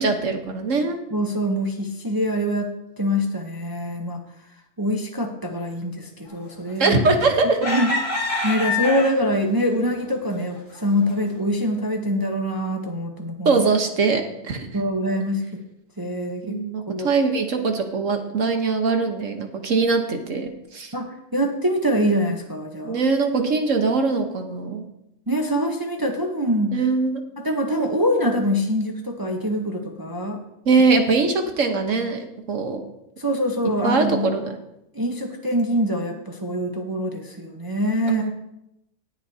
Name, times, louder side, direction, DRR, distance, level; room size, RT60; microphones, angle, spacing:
voice 1, 0.0-1.0 6.8-7.6 13.4-14.7 16.5-20.9 22.8-24.8 26.7-27.2 30.6-32.8 33.8-34.5 38.1-38.3, right 4 dB, 55° right, 5 dB, 1.4 m, -22 dB
voice 2, 1.1-4.2 4.8-7.0 7.7-13.6 14.7-15.5 16.0-16.6 16.9-17.1 20.9-23.0 25.3-26.8 27.4-30.4 33.2-34.3 34.9-38.2, equal, 20° right, 2 dB, 0.8 m, -24 dB
sound 1, 6.8-7.2 7.6-9.4 10.0-10.1 10.6-10.8, left 3 dB, 85° left, 3.1 m, -25 dB
19.0 x 7.7 x 2.8 m, 0.85 s
omnidirectional pair, 1.6 m